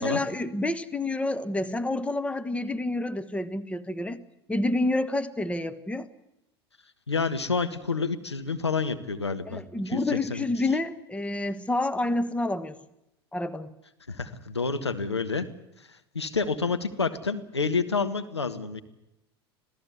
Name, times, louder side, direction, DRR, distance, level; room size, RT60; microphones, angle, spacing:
voice 1, 0.0-4.2 4.5-6.1 9.4-12.8 13.3-13.7, left 2 dB, 10° left, 13 dB, 1.4 m, -28 dB
voice 2, 7.1-10.4 14.1-15.5 15.8-15.9 16.1-18.8, left 4 dB, 85° left, 9 dB, 1.4 m, -29 dB
26.5 x 17.0 x 8.2 m, 0.88 s
figure-of-eight pair, 80°, 14 cm